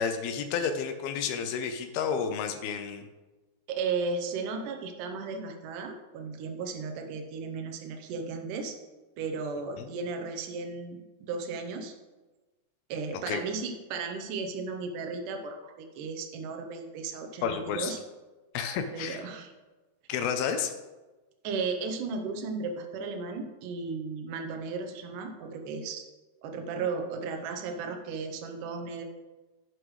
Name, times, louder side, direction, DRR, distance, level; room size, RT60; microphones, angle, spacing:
voice 1, 0.0-3.0 9.8-9.9 13.3-13.4 17.4-18.0 18.5-19.2 20.1-20.7, left 7 dB, 80° left, 7 dB, 2.4 m, -31 dB
voice 2, 3.7-8.7 9.2-11.0 11.3-11.9 12.9-18.0 18.9-19.5 21.4-26.0 26.4-29.0, right 4 dB, 85° right, 4 dB, 1.8 m, -35 dB
11.0 x 7.8 x 3.2 m, 1.2 s
omnidirectional pair, 4.9 m